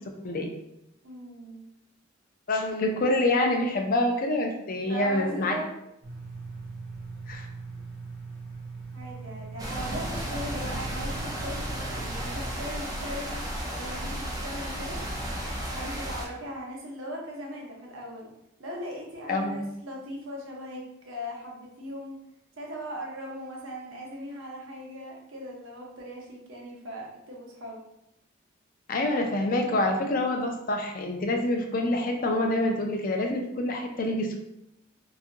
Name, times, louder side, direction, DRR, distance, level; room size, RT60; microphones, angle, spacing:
voice 1, 1.0-1.7 4.9-5.7 8.9-13.4 13.7-15.0 15.7-18.3 18.6-22.2 22.6-27.8, equal, 80° right, -1 dB, 0.7 m, -39 dB
voice 2, 2.5-5.5 7.3-7.5 19.3-19.7 28.9-34.4, left 1 dB, 45° left, 3 dB, 0.4 m, -26 dB
sound 1, 6.0-12.4, right 4 dB, 20° left, 1.0 m, -41 dB
sound 2, 9.6-16.2, equal, 20° right, 0.4 m, -33 dB
2.8 x 2.3 x 2.5 m, 0.83 s
head